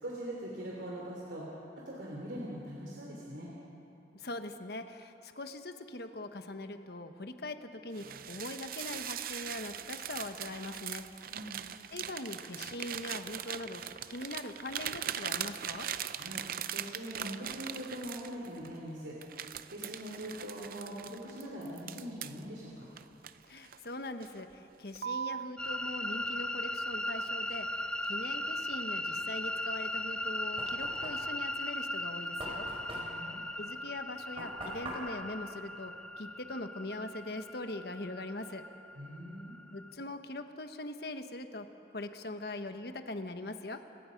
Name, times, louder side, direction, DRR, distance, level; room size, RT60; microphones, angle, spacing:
voice 1, 0.0-3.5 11.3-11.6 16.1-16.4 16.7-19.2 19.7-22.9 32.9-33.4 39.0-39.5, equal, 85° right, -4 dB, 3.3 m, -42 dB
voice 2, 4.1-11.3 11.9-15.9 23.5-32.7 33.6-38.6 39.7-41.7 41.9-43.8, left 2 dB, 60° left, 7 dB, 1.2 m, -42 dB
sound 1, 7.9-18.7 19.2-22.4 23.0-23.9 24.2-24.5 24.9-25.5, right 9 dB, 50° right, 0.6 m, -40 dB
sound 2, 25.6-39.9, left 1 dB, 5° left, 0.4 m, -38 dB
Knock, 30.0-36.5, right 1 dB, 30° right, 4.9 m, -46 dB
29.5 x 17.5 x 5.3 m, 2.9 s
head